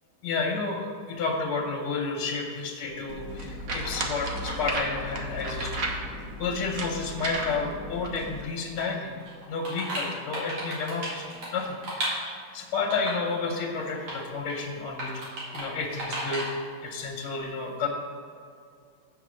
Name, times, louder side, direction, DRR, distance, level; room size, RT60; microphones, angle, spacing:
voice 1, 0.2-5.9 6.4-9.1 9.5-12.1 12.5-15.2 15.5-16.5 16.8-17.9, left 4 dB, 85° left, 0 dB, 1.8 m, -31 dB
sound 1, 3.1-8.4, right 1 dB, 55° right, 1.1 m, -34 dB
sound 2, 8.8-8.9 9.2-12.4 12.9-13.3 13.8-14.2 14.5-14.6 15.0-15.7 15.9-16.5, right 1 dB, 90° right, 3.1 m, -34 dB
7.7 x 5.5 x 6.2 m, 2.3 s
omnidirectional pair, 2.3 m